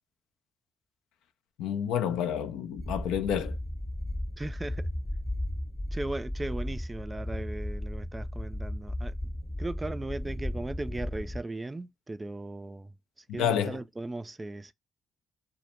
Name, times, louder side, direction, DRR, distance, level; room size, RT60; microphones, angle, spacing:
voice 1, 1.6-3.6 13.4-13.8, left 9 dB, 80° left, 0.3 m, -29 dB
sound 1, 2.8-11.4, left 1 dB, 20° left, 0.7 m, -35 dB
voice 2, 4.4-4.9 5.9-9.1 9.6-12.9 13.3-14.7, right 2 dB, 20° right, 0.3 m, -37 dB
2.1 x 2.0 x 2.9 m
hypercardioid pair, 50°, 0 cm